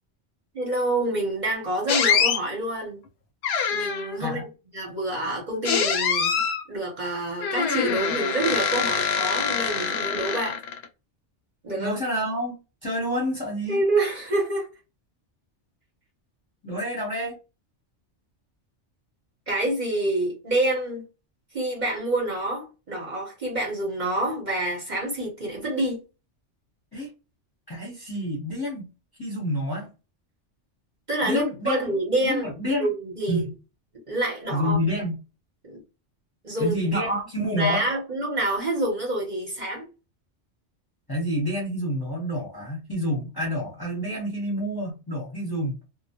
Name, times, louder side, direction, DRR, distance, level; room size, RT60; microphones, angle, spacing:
voice 1, 0.5-3.0 3.7-4.5 4.7-6.3 6.7-10.6 11.6-12.0 13.7-14.7 16.7-16.8 19.5-21.0 21.5-26.0 31.1-32.5 32.8-33.4 34.1-34.8 35.6-35.8 36.4-37.2 37.5-39.9, right 1 dB, 45° right, 0.8 m, -27 dB
sound 1, 1.9-2.4 3.4-4.2 5.6-6.6 7.4-10.9, left 7 dB, 70° left, 0.8 m, -24 dB
voice 2, 11.7-12.6 12.8-13.8 16.6-17.4 26.9-27.1 27.7-28.8 29.2-29.9 31.2-31.8 32.2-32.9 33.3-33.5 34.5-35.1 36.6-37.9 41.1-45.8, equal, 20° left, 0.8 m, -28 dB
2.2 x 2.0 x 2.8 m
omnidirectional pair, 1.2 m